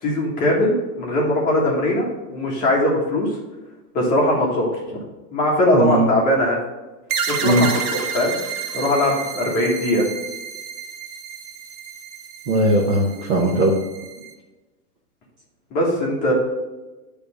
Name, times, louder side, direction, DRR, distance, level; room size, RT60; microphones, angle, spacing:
voice 1, 0.0-3.3 3.9-4.7 5.3-6.6 7.3-8.4 8.7-10.0 15.7-16.3, left 1 dB, 20° left, -3 dB, 1.4 m, -20 dB
voice 2, 5.7-6.1 7.4-7.7 12.5-13.8, right 1 dB, 25° right, -2 dB, 0.9 m, -18 dB
sound 1, 7.1-14.3, right 6 dB, 65° right, 1.2 m, -31 dB
9.3 x 3.4 x 6.2 m, 1.1 s
supercardioid pair, 170°, 46 cm